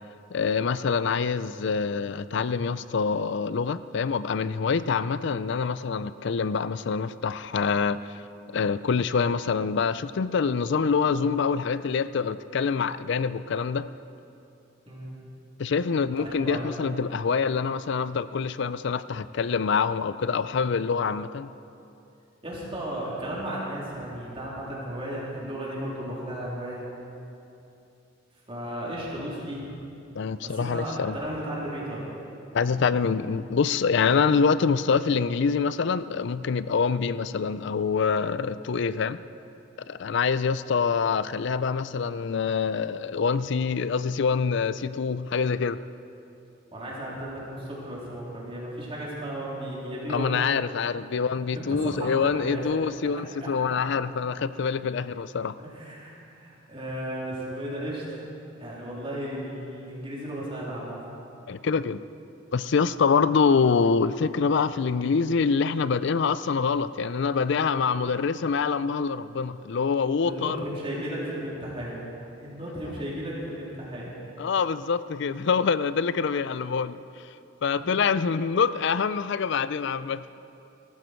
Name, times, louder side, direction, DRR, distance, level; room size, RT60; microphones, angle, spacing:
voice 1, 0.3-8.0 8.5-13.9 15.6-21.5 30.1-31.2 32.5-39.2 39.9-45.8 50.1-55.6 61.5-62.0 62.5-70.6 73.0-73.1 74.4-77.0 77.6-80.2, left 5 dB, 60° left, 15 dB, 0.4 m, -25 dB
voice 2, 16.2-16.7 22.4-26.8 28.5-29.7 30.4-32.0 46.7-50.4 51.6-52.6 55.6-58.2 58.6-61.0 70.2-72.0 72.4-74.1 77.8-78.0, right 1 dB, 30° right, -6 dB, 3.5 m, -34 dB
18.5 x 14.5 x 4.5 m, 2.8 s
head